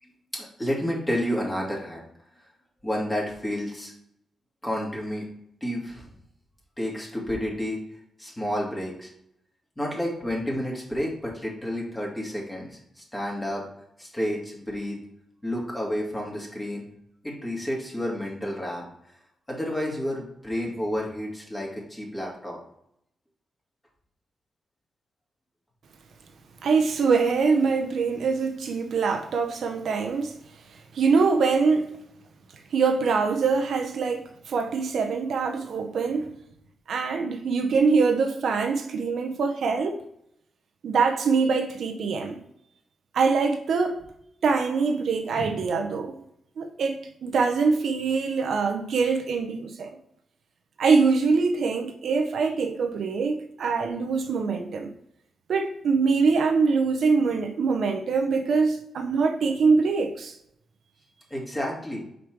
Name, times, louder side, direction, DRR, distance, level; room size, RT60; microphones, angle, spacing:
voice 1, 0.0-2.0 2.8-3.9 4.6-5.3 5.6-6.1 6.8-7.8 8.2-9.1 9.8-13.7 14.0-15.0 15.4-16.8 17.2-18.9 19.5-22.6 61.3-62.1, equal, 15° left, 2.4 m, -30 dB
voice 2, 26.6-30.4 30.9-31.9 32.7-36.3 36.9-40.0 40.8-42.4 43.1-44.0 44.4-46.2 46.6-49.9 50.8-54.9 55.5-60.4, right 4 dB, 75° right, 0.7 m, -24 dB
5.2 x 5.0 x 4.6 m
cardioid pair, 80°, 0 cm